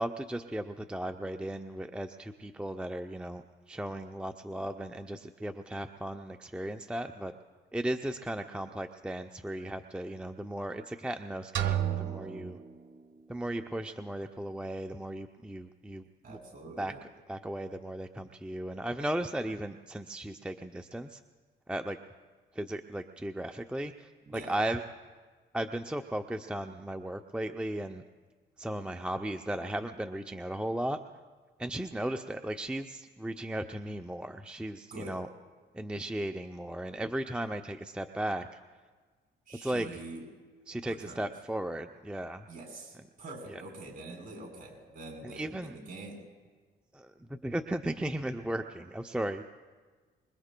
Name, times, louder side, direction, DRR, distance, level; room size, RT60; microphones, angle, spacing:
voice 1, 0.0-7.3 7.7-12.6 13.3-16.4 16.8-16.9 17.3-21.2 21.7-22.0 22.5-24.8 25.5-28.0 28.6-31.0 31.6-35.3 35.7-38.6 39.6-39.9 40.7-42.5 43.5-43.6 45.2-45.7 46.9-49.4, right 1 dB, 5° right, 6 dB, 0.5 m, -36 dB
sound 1, 11.6-13.5, right 10 dB, 65° right, 1.1 m, -33 dB
voice 2, 16.2-17.0 24.3-24.5 34.9-35.2 39.5-40.3 40.9-41.2 42.5-46.2, right 2 dB, 45° right, -1 dB, 3.6 m, -45 dB
25.5 x 22.5 x 2.2 m, 1.4 s
cardioid pair, 90°, 20 cm